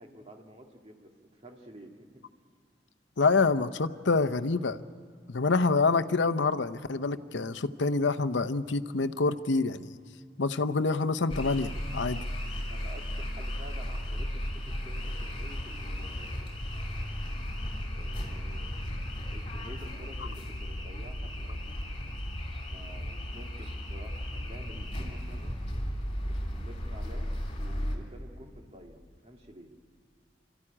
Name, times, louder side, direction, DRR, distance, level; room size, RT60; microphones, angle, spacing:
voice 1, 0.0-2.2 12.7-16.6 17.9-18.8 19.3-21.8 22.5-25.6 26.3-29.7, right 1 dB, 35° right, 2 dB, 2.0 m, -50 dB
voice 2, 3.2-4.8 5.3-10.0 10.4-12.2, left 3 dB, 75° left, 10 dB, 0.7 m, -27 dB
sound 1, 11.3-28.0, equal, 30° left, 3.2 m, -35 dB
26.5 x 14.0 x 9.9 m, 2.3 s
head